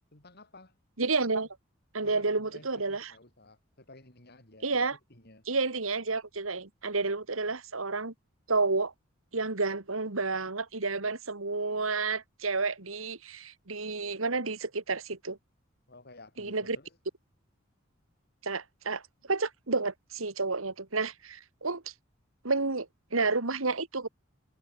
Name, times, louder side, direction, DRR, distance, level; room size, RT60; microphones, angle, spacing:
voice 1, 0.1-0.7 2.0-4.8 5.1-5.5 15.9-17.0, left 2 dB, 50° left, 5.1 m, -54 dB
voice 2, 1.0-1.5 1.9-3.1 4.6-5.0 5.5-8.1 8.5-8.9 9.3-15.4 16.4-16.8 18.4-21.8 22.4-24.1, right 3 dB, 90° right, 2.3 m, -30 dB
head